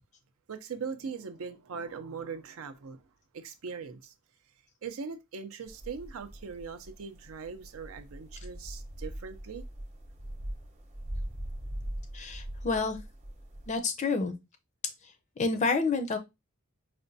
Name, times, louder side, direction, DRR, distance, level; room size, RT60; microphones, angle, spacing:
voice 1, 0.5-3.0 3.3-4.1 4.8-9.6, right 5 dB, 80° right, 0.5 m, -40 dB
sound 1, 5.7-13.8, right 1 dB, 30° right, 0.8 m, -41 dB
voice 2, 12.1-13.0 13.7-14.3 15.0-16.2, left 4 dB, 35° left, 0.4 m, -29 dB
4.9 x 2.2 x 2.6 m
head